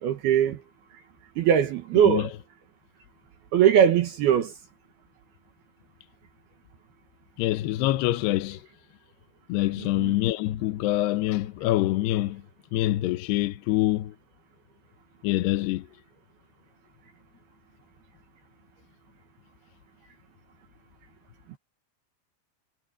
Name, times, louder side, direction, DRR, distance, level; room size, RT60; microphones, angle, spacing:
voice 1, 0.0-0.6 1.4-2.3 3.5-4.5 9.8-10.2, right 9 dB, 65° right, 2.8 m, -21 dB
voice 2, 7.4-8.6 9.5-12.4 12.7-14.1 15.2-15.9, left 16 dB, 75° left, 2.6 m, -25 dB
omnidirectional pair, 5.6 m